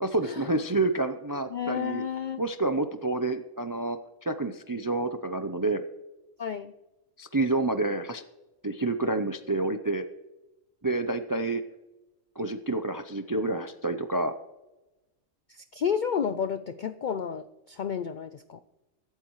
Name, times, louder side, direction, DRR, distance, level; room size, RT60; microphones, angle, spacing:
voice 1, 0.0-2.0 2.4-5.8 7.2-8.2 8.6-10.0 10.8-11.6 12.4-14.3, right 2 dB, 35° right, 9 dB, 0.3 m, -28 dB
voice 2, 1.5-2.4 6.4-6.7 15.5-18.6, left 7 dB, 65° left, 11 dB, 0.4 m, -31 dB
23.0 x 8.3 x 3.1 m, 1.0 s
omnidirectional pair, 1.4 m